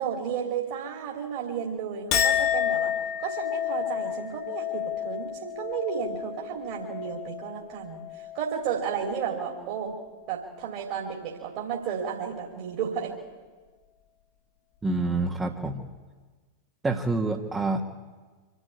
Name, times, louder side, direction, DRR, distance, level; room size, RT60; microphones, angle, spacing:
voice 1, 0.0-2.9 3.2-10.0 10.3-13.1, right 7 dB, 45° right, -1 dB, 3.3 m, -32 dB
Chink clink, 2.1-8.7 9.0-9.6, left 10 dB, 40° left, 1.9 m, -30 dB
voice 2, 14.8-15.8 16.8-17.8, right 3 dB, 15° right, 0 dB, 1.5 m, -27 dB
25.5 x 12.5 x 8.7 m, 1.4 s
figure-of-eight pair, 90°, 0 cm